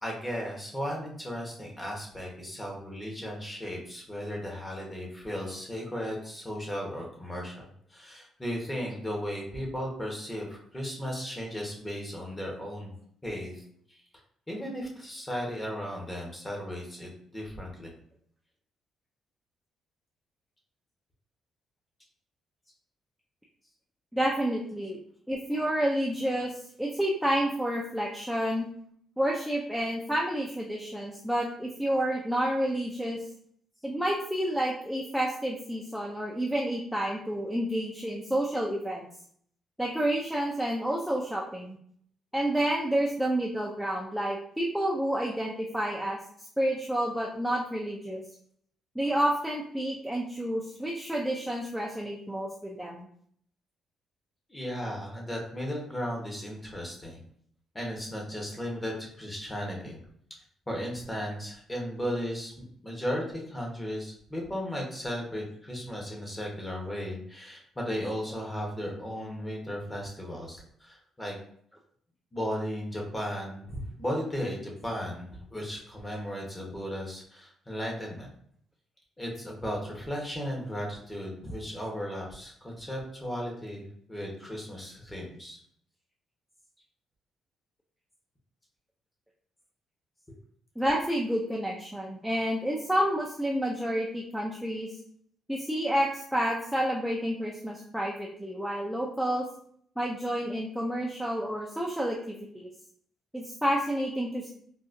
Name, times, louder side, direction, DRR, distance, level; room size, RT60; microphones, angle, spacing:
voice 1, 0.0-12.9 13.2-14.0 14.5-17.9 54.5-57.2 57.7-60.0 60.7-71.4 72.3-78.3 79.2-85.6, equal, 15° left, -1 dB, 1.0 m, -35 dB
voice 2, 24.1-25.0 25.3-28.7 29.2-33.2 33.8-39.1 39.8-41.8 42.3-48.2 49.0-53.1 90.8-94.9 95.5-99.4 100.0-102.2 102.5-102.7 103.3-104.5, right 1 dB, ahead, -3 dB, 0.5 m, -29 dB
3.8 x 2.3 x 2.5 m, 0.63 s
cardioid pair, 90°, 0 cm